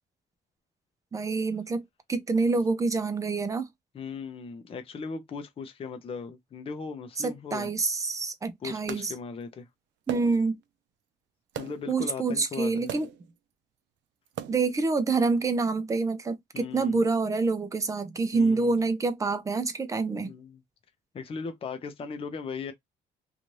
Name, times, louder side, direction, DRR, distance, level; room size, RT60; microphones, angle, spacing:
voice 1, 1.1-1.8 2.1-3.7 7.2-9.1 10.1-10.6 11.9-13.1 14.5-20.3, right 4 dB, 15° right, 0.4 m, -27 dB
voice 2, 3.9-7.7 8.6-9.7 11.6-12.9 16.5-17.0 18.3-18.8 20.2-20.6 21.1-22.7, left 5 dB, 30° left, 0.6 m, -38 dB
sound 1, 8.9-9.1 10.1-10.6 11.6-11.9 12.9-13.3 14.3-14.8, right 11 dB, 75° right, 0.4 m, -38 dB
2.7 x 2.4 x 3.0 m
cardioid pair, 160°, 19 cm